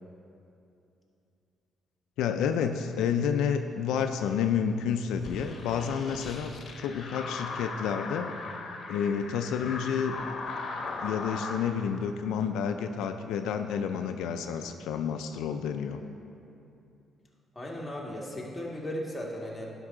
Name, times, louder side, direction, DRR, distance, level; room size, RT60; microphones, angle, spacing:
voice 1, 2.2-8.3 8.9-10.2 11.0-16.0, left 7 dB, 90° left, 7 dB, 0.3 m, -30 dB
sound 1, 5.2-11.6, left 3 dB, 55° left, 0.9 m, -38 dB
voice 2, 17.5-19.7, equal, 15° left, -4 dB, 1.6 m, -36 dB
11.0 x 5.3 x 3.7 m, 2.7 s
cardioid pair, 90°, 0 cm